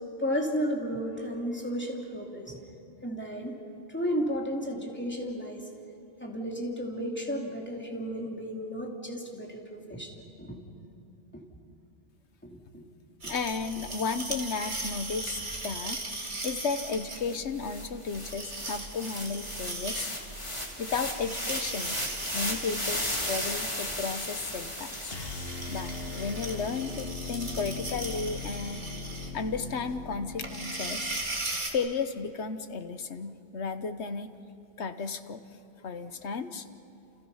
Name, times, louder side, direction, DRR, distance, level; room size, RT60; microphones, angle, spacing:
voice 1, 0.2-2.6 3.0-3.5 3.9-5.7 6.2-10.6 11.3-11.4 12.4-12.8 13.2-13.3, equal, 10° left, -1 dB, 3.1 m, -33 dB
sound 1, 13.2-31.7, right 2 dB, 45° right, 2.3 m, -38 dB
voice 2, 13.3-20.1 20.8-22.0 22.3-25.2 25.7-28.8 29.3-31.1 31.7-34.3 34.8-35.4 35.8-36.6, left 5 dB, 90° left, 10 dB, 1.4 m, -34 dB
sound 2, 16.4-16.5 16.7-27.1, left 1 dB, 25° left, 2.9 m, -37 dB
sound 3, 25.1-31.2, left 4 dB, 60° left, 1.5 m, -40 dB
29.0 x 29.0 x 5.7 m, 2.6 s
omnidirectional pair, 1.1 m